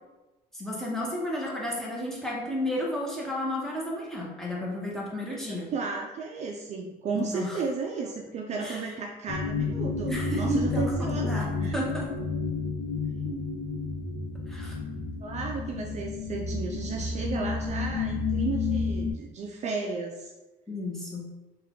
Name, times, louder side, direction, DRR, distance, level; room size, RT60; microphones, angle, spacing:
voice 1, 0.5-5.7 7.1-7.6 8.6-8.8 10.1-12.1 14.5-14.7 20.7-21.3, left 1 dB, ahead, -4 dB, 0.9 m, -32 dB
voice 2, 5.3-11.8 13.2-13.5 15.2-20.3, right 4 dB, 45° right, 1 dB, 0.4 m, -34 dB
sound 1, 9.3-19.1, left 4 dB, 65° left, 0.7 m, -31 dB
3.3 x 2.3 x 3.7 m, 1.1 s
cardioid pair, 110°, 17 cm